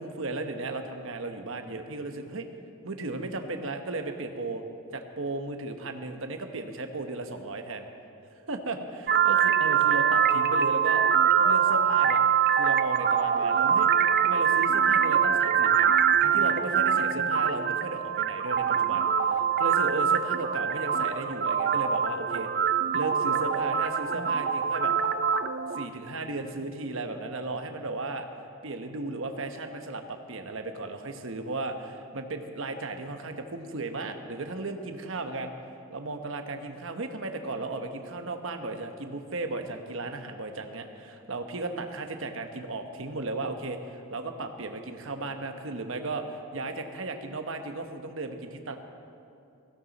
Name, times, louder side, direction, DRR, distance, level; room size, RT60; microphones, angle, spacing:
voice 1, 0.0-2.5 2.8-4.6 4.9-7.9 8.5-11.0 11.4-12.2 12.6-13.9 14.2-22.5 22.9-24.9 25.7-28.3 28.6-35.5 35.9-48.8, right 2 dB, 65° right, 6 dB, 1.1 m, -35 dB
sound 1, 9.1-25.9, right 7 dB, 45° right, 0.5 m, -24 dB
17.5 x 16.0 x 4.1 m, 2.6 s
head